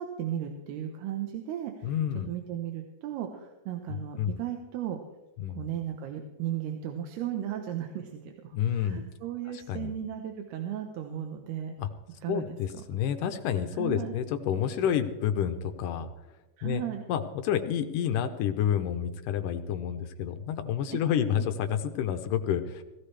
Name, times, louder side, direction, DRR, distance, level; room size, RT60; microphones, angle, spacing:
voice 1, 0.0-1.9 2.3-5.0 5.5-11.8 12.2-12.6 13.8-14.2 16.6-17.0 20.9-21.4, right 10 dB, 85° right, 4 dB, 3.1 m, -35 dB
voice 2, 1.8-2.3 3.9-4.4 5.4-5.7 8.5-9.0 9.5-9.9 11.8-11.9 12.3-16.1 16.6-16.8 17.1-22.8, left 9 dB, 75° left, 7 dB, 2.0 m, -29 dB
19.5 x 16.0 x 3.3 m, 1.1 s
omnidirectional pair, 4.5 m